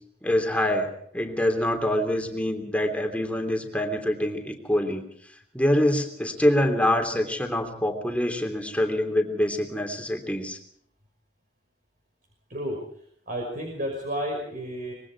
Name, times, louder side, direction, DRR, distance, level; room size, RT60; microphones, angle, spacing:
voice 1, 0.2-5.0 5.5-10.6, left 1 dB, 10° left, 5 dB, 3.2 m, -25 dB
voice 2, 13.3-14.9, equal, 50° right, 1 dB, 5.8 m, -31 dB
25.5 x 22.5 x 4.8 m, 0.64 s
head